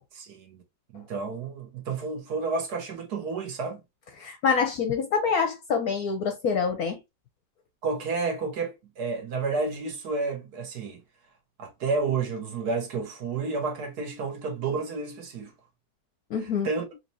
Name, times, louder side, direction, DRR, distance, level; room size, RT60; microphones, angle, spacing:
voice 1, 0.1-0.6 0.9-3.8 7.8-11.0 11.6-15.5 16.6-16.8, right 4 dB, 60° right, 1.4 m, -30 dB
voice 2, 4.2-7.0 16.3-16.7, left 6 dB, 65° left, 0.9 m, -26 dB
4.1 x 3.0 x 2.6 m
omnidirectional pair, 2.1 m